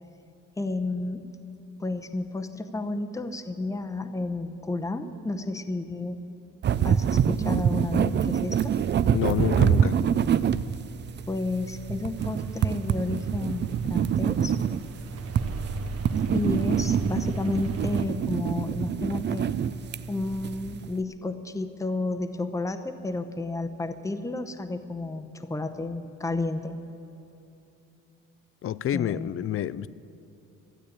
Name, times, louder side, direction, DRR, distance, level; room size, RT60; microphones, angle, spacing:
voice 1, 0.6-1.2 1.8-6.2 6.8-8.7 11.3-14.6 16.3-19.5 20.1-26.8 28.9-29.3, left 2 dB, 10° left, 8 dB, 0.8 m, -31 dB
sound 1, 6.6-20.9, right 8 dB, 35° right, 0.4 m, -26 dB
voice 2, 9.1-10.0 28.6-29.9, left 11 dB, 45° left, 18 dB, 0.4 m, -28 dB
sound 2, 12.2-18.1, right 3 dB, 55° right, 1.1 m, -37 dB
13.0 x 8.7 x 8.6 m, 2.9 s
cardioid pair, 90°, 30 cm